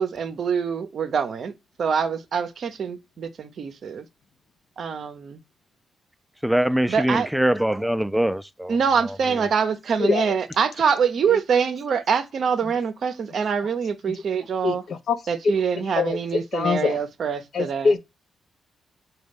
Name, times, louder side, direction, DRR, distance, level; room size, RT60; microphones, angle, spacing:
voice 1, 0.0-1.5 1.8-4.0 4.8-5.4 6.9-7.3 8.7-14.8 15.3-18.0, right 6 dB, 65° right, 0.5 m, -25 dB
voice 2, 6.4-8.8, right 1 dB, 5° right, 0.4 m, -22 dB
voice 3, 14.6-15.2 15.4-15.5 16.0-16.2 16.5-17.0 17.5-18.0, left 4 dB, 65° left, 0.5 m, -22 dB
3.9 x 2.2 x 3.4 m
supercardioid pair, 50°, 0 cm